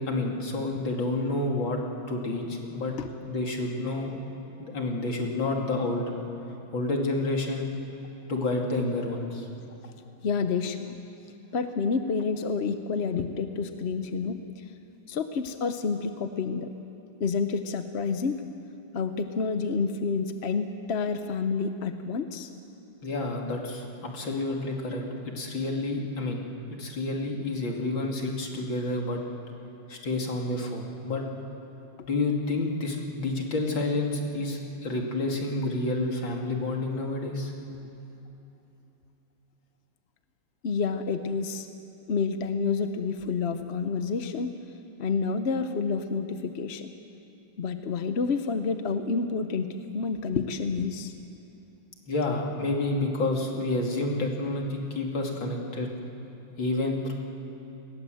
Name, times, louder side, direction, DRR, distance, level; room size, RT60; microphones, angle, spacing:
voice 1, 0.1-1.8 2.1-2.9 3.2-4.2 4.6-6.1 6.7-7.7 8.3-9.5 23.0-25.0 25.4-26.5 26.8-29.2 29.9-31.2 32.1-37.5 52.1-55.9 56.6-57.1, left 2 dB, 80° left, 0 dB, 3.4 m, -29 dB
voice 2, 10.2-11.0 11.5-14.6 15.1-16.7 17.2-18.4 18.9-22.5 40.6-41.7 42.1-44.6 45.0-46.9 47.6-51.1, left 5 dB, 50° left, 8 dB, 0.8 m, -29 dB
28.5 x 21.0 x 7.8 m, 3.0 s
omnidirectional pair, 2.1 m